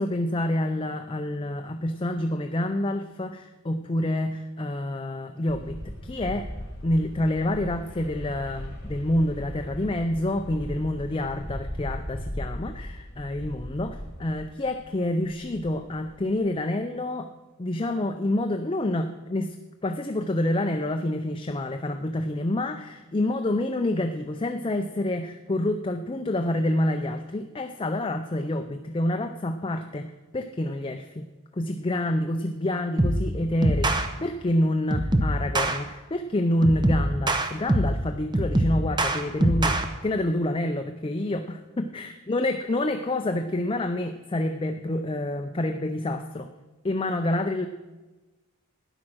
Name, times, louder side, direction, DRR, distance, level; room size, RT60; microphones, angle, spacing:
voice 1, 0.0-6.5 6.8-17.3 17.6-19.6 19.8-31.3 31.5-46.5 46.8-47.7, left 1 dB, 25° left, 6 dB, 0.5 m, -28 dB
sound 1, 5.5-14.9 15.2-16.5, equal, 45° left, 2.9 m, -38 dB
sound 2, 33.0-33.3 33.6-34.1 34.9-35.8 36.6-38.0 38.3-39.8, right 1 dB, 20° right, 0.8 m, -23 dB
13.0 x 9.8 x 6.2 m, 1.2 s
head